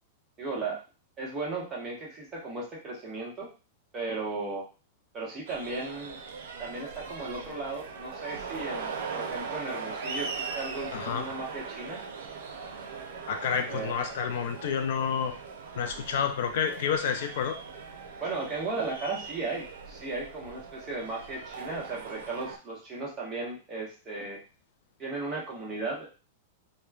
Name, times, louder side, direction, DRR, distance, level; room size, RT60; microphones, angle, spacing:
voice 1, 0.4-0.8 1.2-3.5 3.9-4.7 5.1-6.2 6.6-12.0 13.7-13.9 18.2-24.4 25.0-26.1, right 3 dB, 20° right, -4 dB, 0.9 m, -36 dB
sound 1, 5.5-22.6, right 5 dB, 85° right, 0.5 m, -40 dB
voice 2, 10.9-11.3 13.3-15.3 15.8-17.6, left 7 dB, 60° left, 6 dB, 0.3 m, -29 dB
3.0 x 2.1 x 2.3 m, 0.32 s
supercardioid pair, 165°, 0 cm